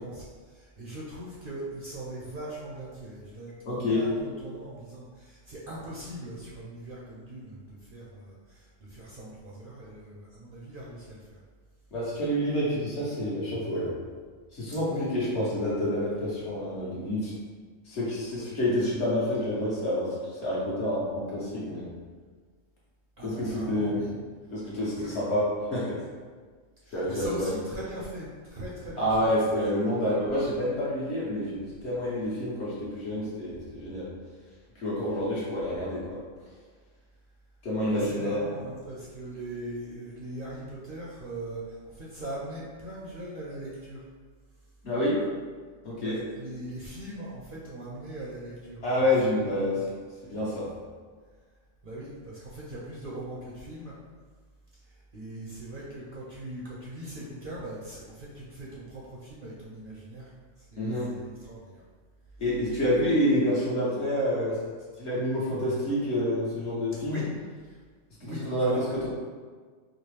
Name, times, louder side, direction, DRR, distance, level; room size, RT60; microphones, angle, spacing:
voice 1, 0.0-11.4 14.9-15.1 18.4-18.5 23.2-24.1 25.0-25.2 26.8-29.3 37.8-44.0 46.0-49.0 49.7-49.8 51.8-53.9 54.7-54.8 55.1-60.3 60.6-61.8 67.0-67.3 67.7-67.8 68.2-68.8, right 1 dB, 55° right, -6 dB, 0.7 m, -40 dB
voice 2, 3.6-4.1 11.9-13.9 14.5-17.3 17.9-20.1 20.4-21.9 23.2-24.0 24.5-26.0 26.9-27.5 29.0-34.1 34.7-36.2 37.6-38.5 44.8-45.2 45.8-46.2 48.8-49.8 50.2-50.7 60.8-61.1 62.4-64.6 65.0-67.2 68.2-69.1, left 1 dB, 60° left, -7 dB, 1.3 m, -28 dB
4.8 x 2.0 x 3.2 m, 1.5 s
omnidirectional pair, 1.4 m